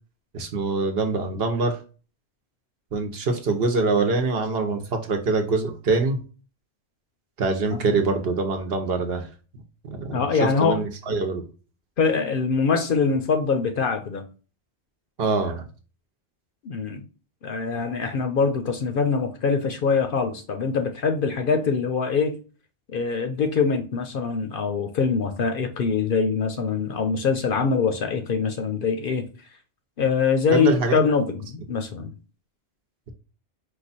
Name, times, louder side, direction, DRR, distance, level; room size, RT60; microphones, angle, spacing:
voice 1, 0.3-1.8 2.9-6.2 7.4-9.3 9.8-11.5 15.2-15.6 30.5-31.0, right 3 dB, 60° right, 1.0 m, -24 dB
voice 2, 10.1-10.8 12.0-14.2 16.6-17.0 17.4-22.4 22.9-29.3 30.0-32.1, left 5 dB, 60° left, 0.7 m, -23 dB
4.8 x 2.3 x 4.0 m
omnidirectional pair, 1.2 m